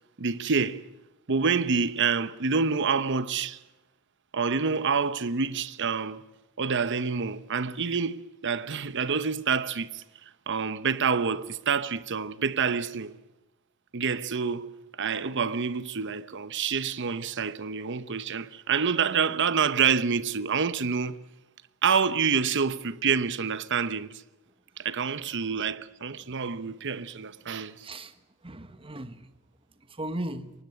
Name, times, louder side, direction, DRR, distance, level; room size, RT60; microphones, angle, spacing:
voice 1, 0.2-0.8 1.3-3.6 4.3-6.2 6.6-10.0 10.5-13.1 13.9-14.7 15.0-21.2 21.8-24.2 24.8-27.8, right 5 dB, 55° right, 0.9 m, -27 dB
voice 2, 27.8-29.3 29.8-30.5, right 1 dB, 25° right, 1.3 m, -37 dB
23.5 x 19.0 x 9.6 m
head